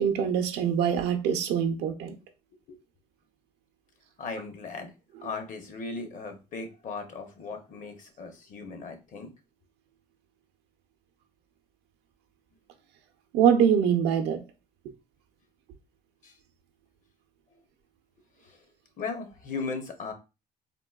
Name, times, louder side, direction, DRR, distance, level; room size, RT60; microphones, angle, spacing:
voice 1, 0.0-2.1 13.3-14.4, right 8 dB, 85° right, 0.5 m, -24 dB
voice 2, 4.2-4.9 5.2-9.3 16.2-16.3 18.4-18.6 19.0-20.1, left 4 dB, 50° left, 0.8 m, -37 dB
3.7 x 2.2 x 2.3 m
cardioid pair, 110°, 17 cm